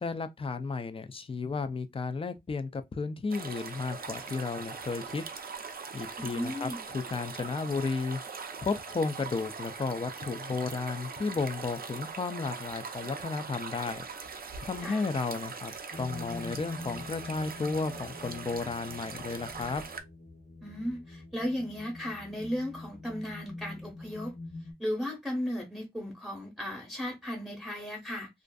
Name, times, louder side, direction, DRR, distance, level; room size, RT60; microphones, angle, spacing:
voice 1, 0.0-5.2 5.9-8.2 8.6-14.0 14.6-19.8, left 4 dB, 35° left, 0.3 m, -33 dB
sound 1, 3.3-20.0, right 5 dB, 70° right, 0.4 m, -41 dB
voice 2, 6.2-6.8 14.8-15.0 20.6-24.3 24.8-28.3, equal, ahead, 0.8 m, -35 dB
sound 2, 15.9-24.7, left 2 dB, 75° left, 0.8 m, -45 dB
2.5 x 2.4 x 2.2 m
wide cardioid pair, 95°, 16 cm